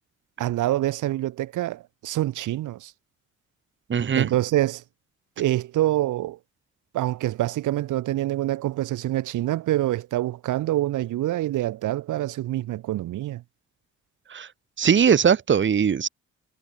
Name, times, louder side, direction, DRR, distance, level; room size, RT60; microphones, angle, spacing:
voice 1, 0.4-2.9 4.2-4.8 5.4-6.4 6.9-13.4, right 15 dB, 80° right, 1.8 m, -26 dB
voice 2, 3.9-4.3 14.3-14.5 14.8-16.1, right 7 dB, 40° right, 1.4 m, -20 dB
cardioid pair, 90°, 30 cm